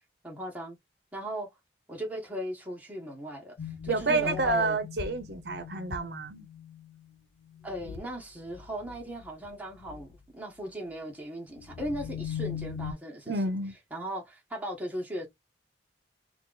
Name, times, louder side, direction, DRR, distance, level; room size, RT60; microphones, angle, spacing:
voice 1, 0.2-0.8 1.1-1.5 1.9-4.8 7.6-13.3 13.9-15.3, equal, 10° right, 1.0 m, -38 dB
sound 1, 3.6-7.0 7.5-8.2 8.5-9.5 9.8-10.1 11.6-12.9, left 8 dB, 85° left, 0.4 m, -40 dB
voice 2, 3.9-6.5 13.3-13.7, right 3 dB, 60° right, 0.7 m, -29 dB
2.9 x 2.3 x 3.8 m
head